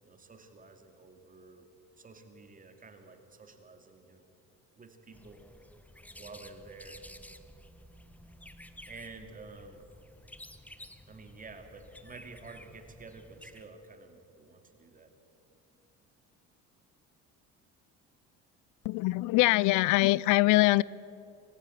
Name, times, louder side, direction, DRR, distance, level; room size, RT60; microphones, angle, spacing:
voice 1, 0.0-1.7 2.0-4.2 4.8-5.4 6.2-7.0 8.8-9.9 11.0-15.1, right 3 dB, 25° right, 2.5 m, -50 dB
sound 1, 5.1-13.7, left 1 dB, 5° left, 1.1 m, -52 dB
voice 2, 18.8-20.8, left 20 dB, 75° left, 0.5 m, -23 dB
26.0 x 15.5 x 9.3 m
cardioid pair, 115°, 31 cm